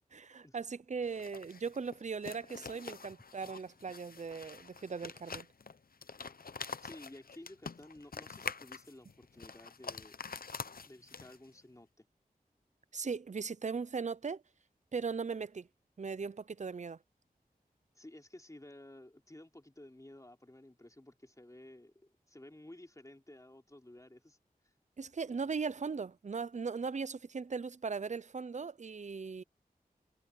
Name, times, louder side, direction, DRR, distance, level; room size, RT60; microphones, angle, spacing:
voice 1, 0.1-5.5 12.9-14.4 14.9-15.7 16.0-17.0 25.0-29.4, right 5 dB, 50° right, 0.6 m, -38 dB
sound 1, 1.0-11.6, left 5 dB, 70° left, 0.8 m, -46 dB
voice 2, 6.8-10.2 10.8-12.1 17.9-24.4 24.6-24.7, left 1 dB, 20° left, 3.7 m, -54 dB
wide cardioid pair, 60°, 16 cm